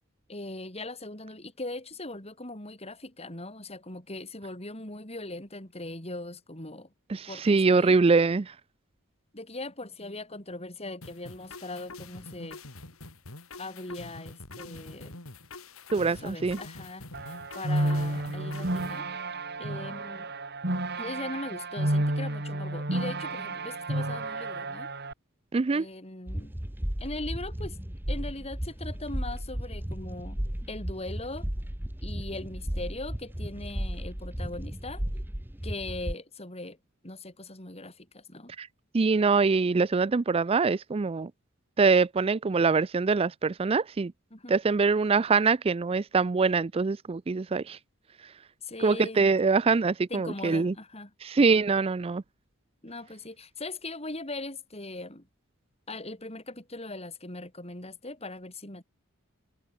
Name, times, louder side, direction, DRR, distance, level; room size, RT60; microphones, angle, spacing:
voice 1, 0.3-6.9 7.3-8.0 9.3-12.6 13.6-15.2 16.1-17.0 17.5-19.1 19.6-20.3 21.0-24.9 25.7-26.5 27.0-27.8 28.1-30.4 30.7-31.5 32.0-35.0 35.6-36.8 37.0-38.5 44.3-44.5 48.6-49.3 50.1-51.1 52.8-55.3 55.9-58.8, left 2 dB, 30° left, 6.4 m, -40 dB
voice 2, 7.1-8.5 15.9-16.6 25.5-25.9 38.6-38.7 38.9-41.3 41.8-44.1 44.5-47.8 48.8-50.7 51.2-52.2, right 4 dB, 25° right, 0.4 m, -24 dB
sound 1, 11.0-19.0, left 2 dB, 85° left, 4.9 m, -45 dB
sound 2, 17.1-25.1, right 1 dB, 50° right, 3.9 m, -31 dB
sound 3, 26.3-36.1, equal, 10° right, 1.1 m, -34 dB
head